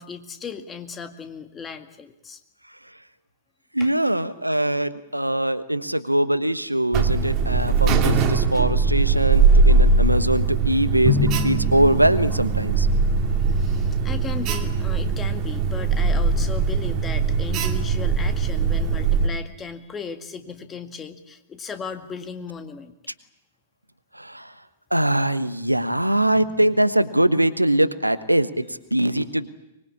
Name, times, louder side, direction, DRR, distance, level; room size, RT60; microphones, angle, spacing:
voice 1, 0.0-2.4 3.8-3.9 13.5-22.9 26.3-26.6, left 5 dB, 15° left, 7 dB, 2.0 m, -36 dB
voice 2, 3.7-12.9 24.1-24.5 24.9-29.5, right 1 dB, 90° right, 12 dB, 1.2 m, -22 dB
Alarm, 6.9-19.3, right 4 dB, 30° right, 2.5 m, -20 dB
Drum, 11.0-13.2, left 4 dB, 50° right, 3.0 m, -27 dB
24.5 x 21.5 x 8.6 m, 0.90 s
figure-of-eight pair, 105°, 0 cm